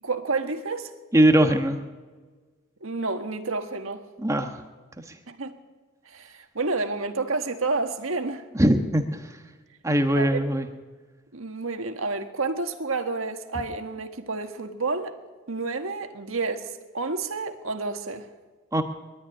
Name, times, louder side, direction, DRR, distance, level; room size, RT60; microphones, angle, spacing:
voice 1, 0.0-0.9 2.8-4.0 5.3-5.5 6.0-8.4 10.1-10.4 11.3-15.2 15.5-18.3, right 3 dB, 85° right, 1.6 m, -30 dB
voice 2, 1.1-1.8 4.2-4.6 8.5-9.2 9.8-10.7 18.7-18.8, right 1 dB, 15° right, 1.2 m, -20 dB
22.0 x 12.5 x 9.9 m
head